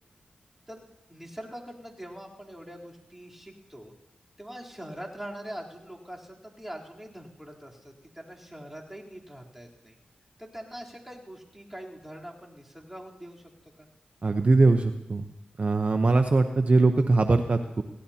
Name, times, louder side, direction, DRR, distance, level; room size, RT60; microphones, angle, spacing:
voice 1, 1.1-3.9 4.4-10.0 10.4-13.5 13.8-13.9, equal, 10° right, -3 dB, 3.6 m, -43 dB
voice 2, 14.2-15.2 15.6-17.8, right 3 dB, 45° right, 6 dB, 0.8 m, -21 dB
23.0 x 17.0 x 2.9 m, 0.95 s
cardioid pair, 40°, 3 cm